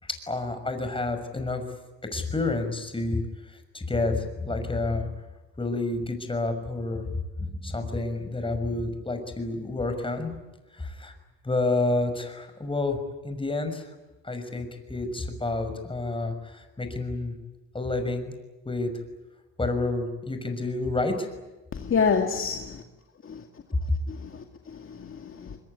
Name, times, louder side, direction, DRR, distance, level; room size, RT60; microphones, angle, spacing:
voice 1, 0.0-1.6 2.1-5.1 5.6-10.3 10.7-11.1 11.4-13.0 13.2-13.9 14.2-17.4 17.7-18.3 18.6-18.9 19.6-21.3 23.7-23.8, left 2 dB, 15° left, 6.0 m, -29 dB
voice 2, 21.7-22.8 23.2-23.4 24.1-25.6, left 5 dB, 45° left, 2.3 m, -28 dB
24.5 x 22.5 x 9.7 m
cardioid pair, 90°, 30 cm